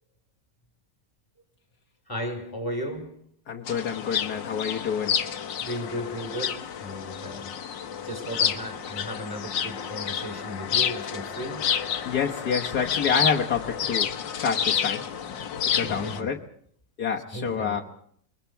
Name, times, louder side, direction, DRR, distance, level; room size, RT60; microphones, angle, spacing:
voice 1, 2.1-3.2 5.6-7.5 8.0-11.7 15.8-16.3 17.3-17.8, equal, 10° left, 4.0 m, -35 dB
voice 2, 3.5-5.1 12.1-15.0 15.8-16.4 17.0-17.8, left 6 dB, 60° left, 1.7 m, -28 dB
sound 1, 3.7-16.2, left 8 dB, 80° left, 1.9 m, -29 dB
28.5 x 22.5 x 4.6 m
omnidirectional pair, 2.0 m